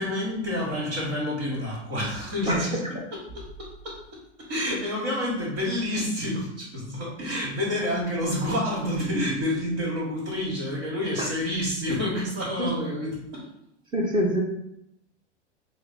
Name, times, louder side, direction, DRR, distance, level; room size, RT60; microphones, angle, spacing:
voice 1, 0.0-4.0 4.4-13.5, left 1 dB, 45° right, -7 dB, 1.7 m, -29 dB
voice 2, 13.9-14.4, equal, 15° right, 0 dB, 1.0 m, -24 dB
5.5 x 2.2 x 4.1 m, 0.78 s
figure-of-eight pair, 90°, 35 cm